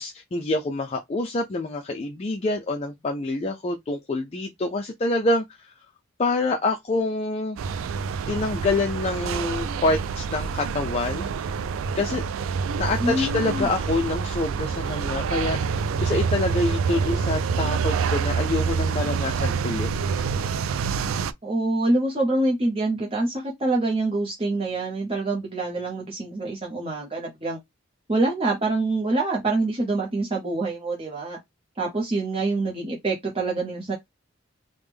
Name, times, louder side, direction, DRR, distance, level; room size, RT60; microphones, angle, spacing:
voice 1, 0.0-5.7 6.2-7.8 8.3-11.3 11.9-12.2 12.8-19.9 20.2-20.6, left 2 dB, 30° left, 0.4 m, -27 dB
sound 1, 7.6-21.3, right 5 dB, 85° right, 0.3 m, -27 dB
voice 2, 13.0-13.7 21.4-27.6 28.1-31.4 31.8-33.9, right 2 dB, 30° right, 0.7 m, -25 dB
3.4 x 2.1 x 3.4 m
head